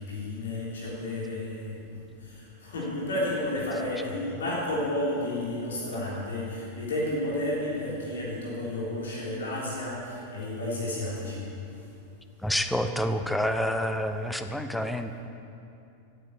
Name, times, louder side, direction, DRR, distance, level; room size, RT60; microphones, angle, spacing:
voice 1, 0.0-11.5, left 1 dB, 65° left, -6 dB, 3.5 m, -32 dB
voice 2, 12.4-15.2, equal, 5° left, 8 dB, 0.9 m, -28 dB
15.0 x 9.2 x 8.3 m, 2.7 s
figure-of-eight pair, 90°, 0 cm